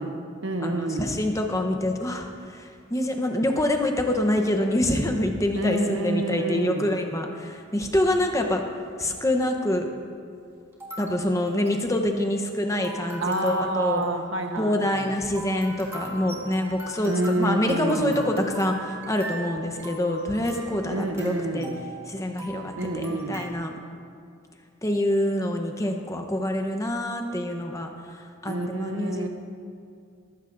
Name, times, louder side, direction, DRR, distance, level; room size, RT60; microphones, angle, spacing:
voice 1, 0.0-1.2 5.5-6.9 13.2-15.1 17.1-18.3 20.9-21.9 22.8-23.5 28.4-29.3, right 2 dB, 60° right, 4 dB, 1.1 m, -28 dB
voice 2, 0.6-8.6 9.0-9.9 11.0-14.0 14.6-21.7 22.1-23.7 24.8-29.3, left 1 dB, 15° left, 4 dB, 0.9 m, -26 dB
sound 1, 7.8-8.3 9.1-9.2 10.7-23.5, right 1 dB, 15° right, 2.5 m, -41 dB
19.0 x 15.5 x 2.6 m, 2.3 s
head